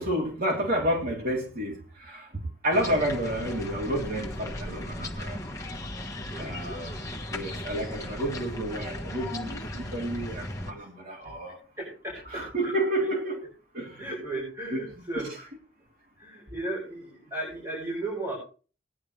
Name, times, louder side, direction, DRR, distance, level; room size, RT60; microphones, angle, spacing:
voice 1, 0.0-2.3 2.6-5.4 6.4-11.6 12.3-14.0 14.7-14.8 15.2-15.3, right 1 dB, 50° right, 3.6 m, -30 dB
sound 1, 2.7-10.7, left 1 dB, 15° left, 1.7 m, -36 dB
voice 2, 6.2-6.5 10.8-10.9 11.2-11.3 11.8-12.7 14.0-15.3 16.2-18.3, right 2 dB, 15° right, 6.9 m, -35 dB
19.0 x 11.0 x 3.4 m
head